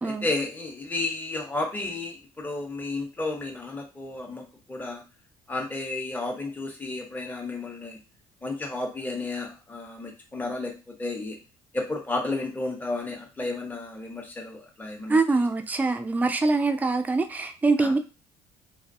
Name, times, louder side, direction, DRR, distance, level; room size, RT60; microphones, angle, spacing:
voice 1, 0.0-5.0 5.5-8.0 8.4-11.4 11.7-15.2 17.8-17.9, left 2 dB, 15° left, 0.8 m, -32 dB
voice 2, 15.1-18.0, right 3 dB, 15° right, 0.3 m, -24 dB
2.3 x 2.2 x 2.6 m
hypercardioid pair, 65°, 12 cm